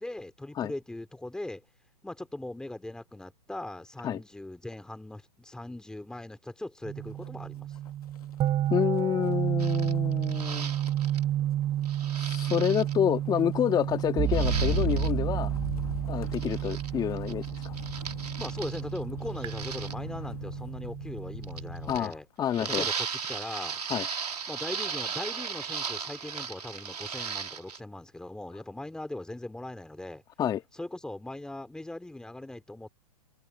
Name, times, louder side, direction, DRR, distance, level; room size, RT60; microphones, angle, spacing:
voice 1, 0.0-1.6 2.0-7.7 18.4-22.3 22.6-23.8 24.5-30.2 30.7-32.9, left 1 dB, 5° left, 3.5 m, -40 dB
sound 1, 6.8-21.9, right 12 dB, 25° right, 4.4 m, -31 dB
Motor vehicle (road), 7.1-7.4 7.7-22.2 22.6-23.0, left 8 dB, 65° left, 2.0 m, -40 dB
voice 2, 8.7-10.7 12.1-15.5 16.1-17.7 21.9-22.1 22.4-22.9 23.9-24.1 30.4-30.6, left 10 dB, 20° left, 2.2 m, -28 dB
sound 2, 9.6-11.2 11.8-12.9 14.3-15.1 16.3-16.9 17.2-19.0 19.3-19.9 21.4-22.1 22.5-27.8, right 6 dB, 75° right, 3.8 m, -36 dB
figure-of-eight pair, 115°, 20 cm